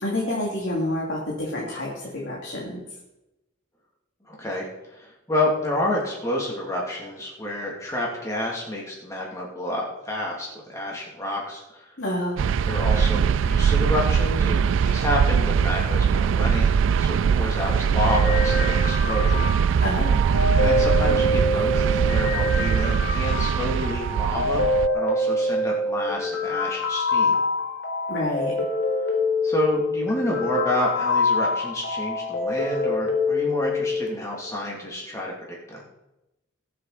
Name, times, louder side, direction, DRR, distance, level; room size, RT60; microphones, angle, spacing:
voice 1, 0.0-2.8 12.0-12.4 19.8-20.2 28.1-28.5, left 1 dB, 60° left, -4 dB, 2.8 m, -28 dB
voice 2, 4.3-4.7 4.9-11.8 12.6-16.7 17.0-19.7 20.6-24.6 24.9-27.4 29.4-35.8, left 1 dB, 15° left, -3 dB, 2.9 m, -29 dB
sound 1, 12.4-24.9, right 7 dB, 75° right, 0.3 m, -21 dB
sound 2, 18.1-34.1, left 2 dB, 75° left, 4.7 m, -25 dB
20.5 x 7.7 x 4.3 m, 0.95 s
head